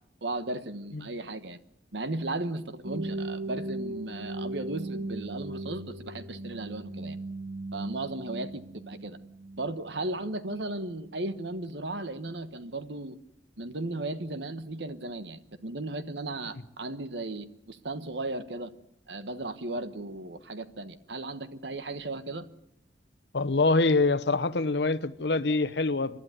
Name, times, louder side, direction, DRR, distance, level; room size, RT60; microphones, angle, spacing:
voice 1, 0.2-1.6 1.9-7.2 7.7-9.2 9.6-13.2 13.6-18.7 19.1-22.5, right 2 dB, 75° right, 1.3 m, -36 dB
sound 1, 2.8-10.7, right 2 dB, 55° right, 1.4 m, -38 dB
voice 2, 23.3-26.2, left 3 dB, 70° left, 0.9 m, -25 dB
29.0 x 11.5 x 9.3 m
head